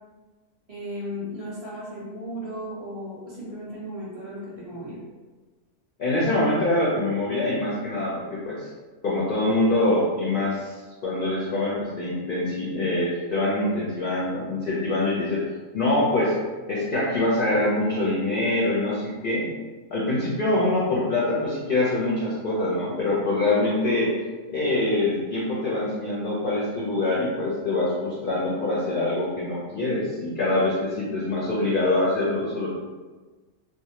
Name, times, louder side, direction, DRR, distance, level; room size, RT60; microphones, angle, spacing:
voice 1, 0.7-5.0, equal, 30° right, -8 dB, 0.7 m, -35 dB
voice 2, 6.0-8.7 9.0-10.7 11.0-15.4 15.7-16.3 16.7-19.5 19.9-24.1 24.5-32.7, left 2 dB, 60° left, -6 dB, 0.5 m, -24 dB
2.6 x 2.1 x 2.8 m, 1.3 s
omnidirectional pair, 1.4 m